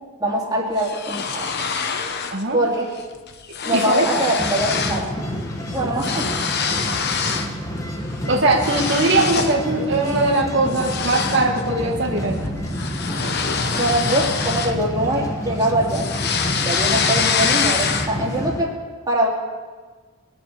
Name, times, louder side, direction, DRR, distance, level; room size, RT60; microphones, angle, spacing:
voice 1, 0.2-1.6 2.5-2.9 3.7-5.2 5.7-6.5 13.7-16.1 16.6-18.8 19.1-19.3, right 1 dB, 20° right, -3 dB, 2.5 m, -23 dB
sound 1, 0.8-2.4 2.8-3.0 3.3-5.1 5.4-7.5 8.0-9.6 10.1-10.3 10.7-15.3 15.6-18.3, left 6 dB, 50° left, 1.0 m, -25 dB
voice 2, 3.7-4.2 8.3-12.4, right 2 dB, 55° right, -1 dB, 1.6 m, -20 dB
sound 2, 4.4-18.6, equal, 15° left, 1.3 m, -29 dB
22.0 x 7.7 x 6.8 m, 1.4 s
head